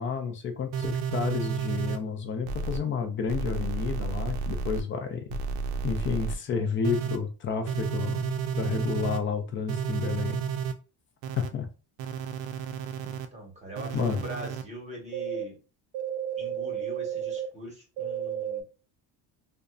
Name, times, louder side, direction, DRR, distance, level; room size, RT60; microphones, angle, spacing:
voice 1, 0.0-5.3 5.8-10.4 11.4-11.7 13.9-14.2, left 6 dB, 30° left, 0.4 m, -30 dB
sound 1, 0.7-2.0 2.5-2.8 3.3-4.8 5.3-6.4 6.8-7.2 7.7-9.2 9.7-10.7 11.2-11.5 12.0-13.3 13.8-14.6 15.1-15.4 15.9-17.5 18.0-18.6, right 6 dB, 80° right, 0.5 m, -32 dB
voice 2, 13.0-15.6 16.4-18.6, equal, 15° right, 1.1 m, -42 dB
2.5 x 2.1 x 2.3 m
cardioid pair, 115°, 43 cm